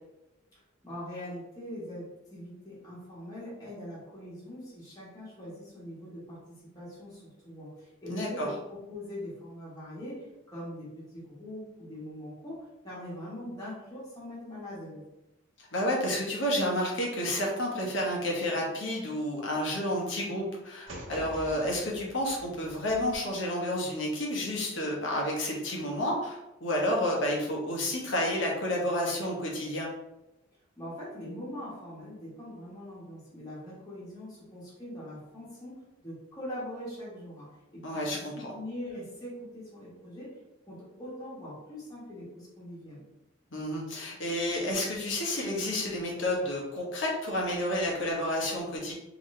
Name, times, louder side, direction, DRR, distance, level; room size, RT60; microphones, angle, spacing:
voice 1, 0.8-15.0 30.8-37.5 37.7-40.3 40.7-43.1, left 1 dB, 20° left, -9 dB, 1.3 m, -42 dB
voice 2, 8.1-8.5 15.6-29.9 37.8-38.5 43.5-48.9, left 1 dB, 65° left, -2 dB, 1.1 m, -30 dB
sound 1, 20.9-23.2, equal, 70° right, 1.2 m, -45 dB
3.9 x 3.0 x 3.2 m, 0.94 s
head